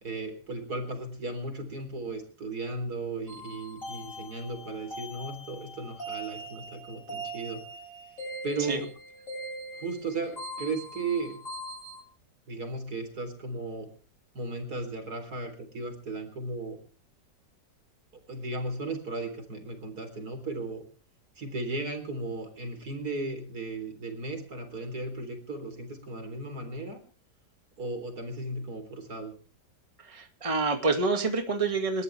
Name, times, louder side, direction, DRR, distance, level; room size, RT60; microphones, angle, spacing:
voice 1, 0.0-7.6 8.4-8.9 9.7-11.4 12.5-13.9 14.3-16.8 18.1-20.8 21.4-27.0 27.8-29.3, right 2 dB, 60° right, 7 dB, 4.3 m, -35 dB
sound 1, 3.3-12.0, right 1 dB, 45° left, 8.6 m, -41 dB
voice 2, 30.0-32.0, right 4 dB, 20° right, 5 dB, 2.2 m, -27 dB
28.5 x 13.5 x 3.4 m, 0.40 s
omnidirectional pair, 1.8 m